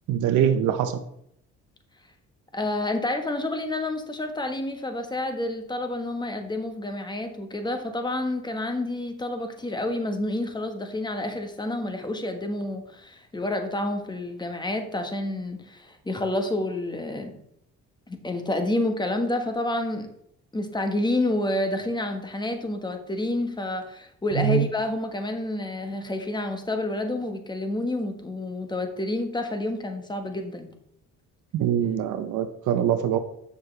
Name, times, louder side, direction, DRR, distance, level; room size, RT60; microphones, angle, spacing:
voice 1, 0.1-1.0 24.4-24.7 31.5-33.2, right 9 dB, 80° right, 9 dB, 0.7 m, -23 dB
voice 2, 2.5-17.4 18.1-20.1 20.5-30.7, left 1 dB, 15° left, 6 dB, 1.3 m, -29 dB
8.3 x 6.7 x 3.3 m, 0.73 s
cardioid pair, 90°, 30 cm